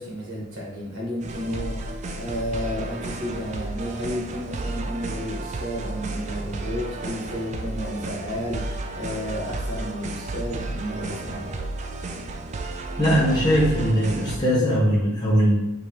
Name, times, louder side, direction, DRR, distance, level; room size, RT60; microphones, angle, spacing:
voice 1, 0.0-11.6, equal, 65° right, -3 dB, 1.6 m, -32 dB
sound 1, 1.2-14.4, right 2 dB, 35° right, 0.4 m, -32 dB
voice 2, 13.0-15.6, equal, 20° left, -5 dB, 1.0 m, -20 dB
5.2 x 2.9 x 3.2 m, 0.87 s
head